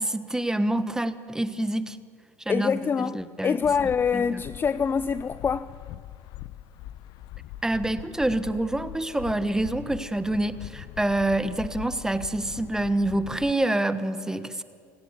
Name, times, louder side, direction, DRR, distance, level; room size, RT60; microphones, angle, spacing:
voice 1, 0.0-2.0 2.4-3.6 4.1-4.4 7.6-14.6, right 1 dB, 5° right, 1.2 m, -27 dB
voice 2, 2.5-3.2 3.4-5.7, left 6 dB, 25° left, 0.5 m, -25 dB
sound 1, 3.6-13.5, left 14 dB, 60° left, 0.8 m, -42 dB
28.0 x 17.0 x 8.2 m
hypercardioid pair, 75°, 8 cm